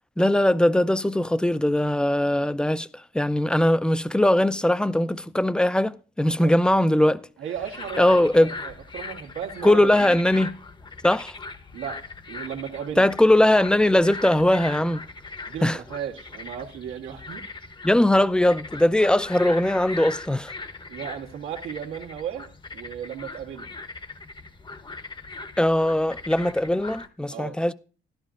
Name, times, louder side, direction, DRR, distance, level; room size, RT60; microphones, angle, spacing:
voice 1, 0.2-7.2 8.0-8.5 9.6-10.5 11.0-11.4 13.0-15.0 15.6-15.8 17.8-20.5 25.6-27.7, left 1 dB, 5° left, 0.4 m, -20 dB
voice 2, 7.4-10.2 11.7-13.1 15.5-17.5 20.9-23.7 27.3-27.6, right 9 dB, 90° right, 1.4 m, -35 dB
sound 1, 7.5-27.1, left 3 dB, 25° left, 0.8 m, -40 dB
13.5 x 11.5 x 2.5 m
cardioid pair, 90°, 20 cm